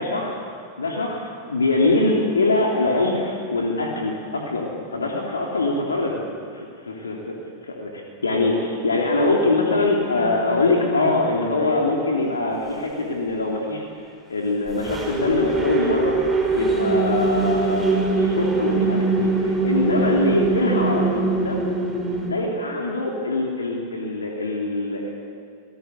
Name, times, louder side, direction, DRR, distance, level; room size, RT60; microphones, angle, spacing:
voice 1, 0.0-0.4 0.8-6.2 6.5-7.4 7.6-13.8 14.3-16.2 16.5-21.6 22.2-25.1, left 2 dB, 85° left, 0 dB, 3.0 m, -23 dB
sound 1, 9.8-11.6 14.7-22.3, right 3 dB, 15° right, 5.1 m, -23 dB
26.5 x 19.0 x 8.2 m, 2.3 s
figure-of-eight pair, 95°, 0 cm